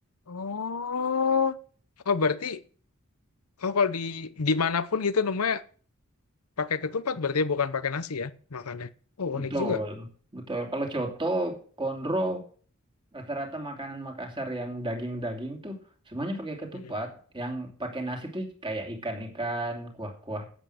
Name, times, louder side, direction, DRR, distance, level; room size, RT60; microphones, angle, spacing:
voice 1, 0.3-1.6 2.1-2.6 3.6-5.6 6.6-8.9 9.2-9.8 16.7-16.9, left 5 dB, 80° left, 14 dB, 0.8 m, -27 dB
voice 2, 9.3-10.0 10.3-12.4 13.1-15.8 16.1-20.5, right 1 dB, 20° right, 2 dB, 2.8 m, -32 dB
11.0 x 8.2 x 6.6 m, 0.43 s
head